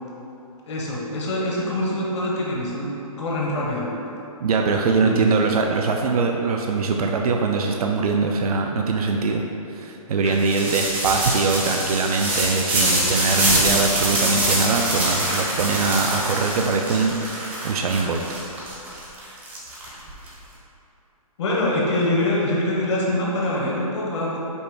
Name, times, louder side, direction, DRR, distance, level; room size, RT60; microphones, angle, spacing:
voice 1, 0.7-2.9 3.2-3.9 4.8-5.3 10.2-10.4 12.8-12.9 21.4-24.4, left 1 dB, 50° left, -4 dB, 1.0 m, -24 dB
voice 2, 4.4-9.4 9.7-18.2, right 4 dB, 75° right, 2 dB, 0.4 m, -22 dB
sound 1, 10.4-20.3, right 1 dB, 10° right, 0.4 m, -24 dB
5.3 x 2.2 x 4.6 m, 3.0 s
hypercardioid pair, 155°, 19 cm